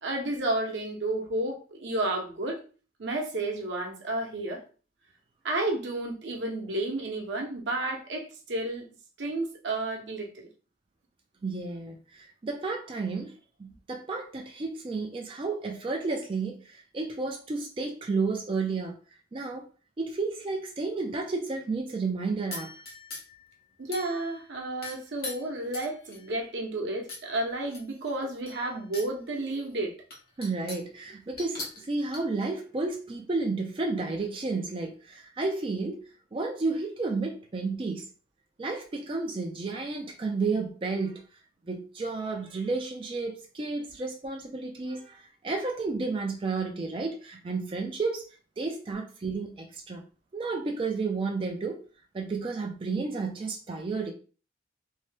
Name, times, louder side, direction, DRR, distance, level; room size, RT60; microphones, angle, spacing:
voice 1, 0.0-2.6 3.0-4.6 5.4-8.8 9.2-10.5 23.8-29.9, right 2 dB, 85° right, 0.7 m, -31 dB
voice 2, 11.4-13.3 13.6-19.0 19.3-19.6 20.0-22.7 30.4-36.0 36.3-38.0 38.6-41.2 41.7-48.2 48.6-50.0 50.3-51.8 52.1-54.1, right 3 dB, 30° right, 0.3 m, -32 dB
sound 1, 22.5-23.4 23.9-24.5 24.8-26.4 27.1-27.2 27.6-29.1 29.5-29.6 30.1-30.9 31.4-32.2, left 3 dB, 55° left, 0.9 m, -41 dB
2.7 x 2.1 x 3.2 m
head